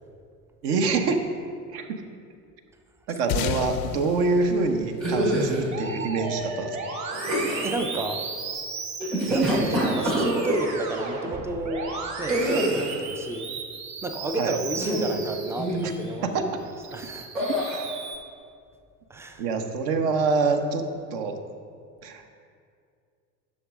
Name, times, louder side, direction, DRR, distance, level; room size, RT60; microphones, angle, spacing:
voice 1, 0.6-1.2 1.7-2.0 3.1-6.8 14.4-14.6 16.2-16.5 19.4-20.8 21.1-21.3 22.0-22.3, right 4 dB, 55° right, 6 dB, 1.0 m, -25 dB
sound 1, 3.3-6.1, left 9 dB, 60° left, 0.6 m, -32 dB
sound 2, 5.0-5.6 7.1-7.8 9.0-10.7 12.3-13.0 14.7-15.2 15.6-16.0 17.3-17.8, right 1 dB, 80° right, 2.3 m, -26 dB
Musical instrument, 5.7-16.1 16.6-18.2, right 4 dB, 35° right, 1.6 m, -35 dB
voice 2, 7.6-8.3 9.3-13.5 14.0-16.4 16.9-17.5 19.1-19.5, right 2 dB, 5° right, 6 dB, 0.4 m, -32 dB
11.0 x 6.4 x 3.6 m, 2.3 s
figure-of-eight pair, 65°, 48 cm